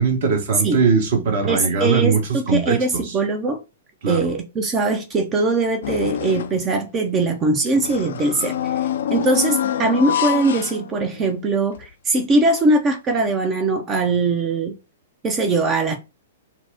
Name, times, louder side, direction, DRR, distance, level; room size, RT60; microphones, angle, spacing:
voice 1, 0.0-3.1 4.0-4.3, right 5 dB, 50° right, 1.0 m, -20 dB
voice 2, 1.5-3.6 4.1-8.8 9.1-14.7 15.2-16.0, right 3 dB, 25° right, 0.5 m, -21 dB
sound 1, 5.8-6.7 7.8-11.4 11.8-11.9 12.9-13.0, left 10 dB, 60° left, 0.3 m, -26 dB
4.3 x 2.0 x 2.5 m
figure-of-eight pair, 110°, 0 cm